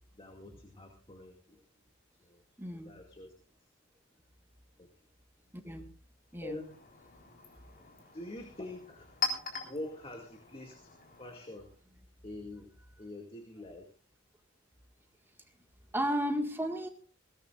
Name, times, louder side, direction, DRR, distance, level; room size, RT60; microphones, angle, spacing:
voice 1, 0.1-1.6 2.2-2.4 2.9-3.3 4.8-4.9 6.4-6.7 8.1-9.1 9.6-10.9 11.2-11.7 12.2-12.7 13.0-13.9, left 1 dB, 30° left, 2 dB, 2.2 m, -45 dB
voice 2, 2.6-2.9 5.6-5.8 6.3-6.6 15.9-16.9, equal, 10° right, 4 dB, 1.8 m, -33 dB
Chink clink, 6.3-11.8, left 5 dB, 50° left, 3.8 m, -42 dB
21.5 x 17.5 x 2.5 m, 0.39 s
head